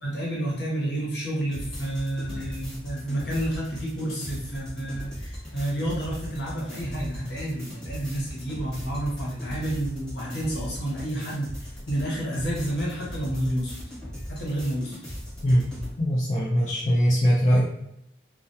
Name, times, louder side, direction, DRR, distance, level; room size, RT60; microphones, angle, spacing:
voice 1, 0.0-13.7 14.3-14.9, right 1 dB, 60° left, -5 dB, 0.9 m, -30 dB
sound 1, 1.5-16.0, equal, 5° left, 1.0 m, -38 dB
voice 2, 16.0-17.6, equal, 40° left, -7 dB, 0.4 m, -21 dB
2.2 x 2.2 x 2.6 m, 0.77 s
head